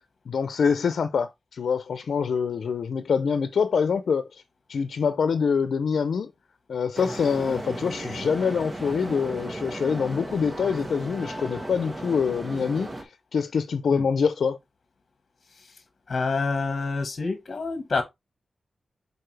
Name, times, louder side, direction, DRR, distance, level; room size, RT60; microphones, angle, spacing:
voice 1, 0.3-4.4 4.7-6.3 6.7-14.6, left 6 dB, 85° left, 0.6 m, -25 dB
sound 1, 7.0-13.0, right 1 dB, 20° right, 1.2 m, -35 dB
voice 2, 16.1-18.0, left 4 dB, 45° left, 1.3 m, -27 dB
6.8 x 4.2 x 3.3 m
wide cardioid pair, 125°, 0 cm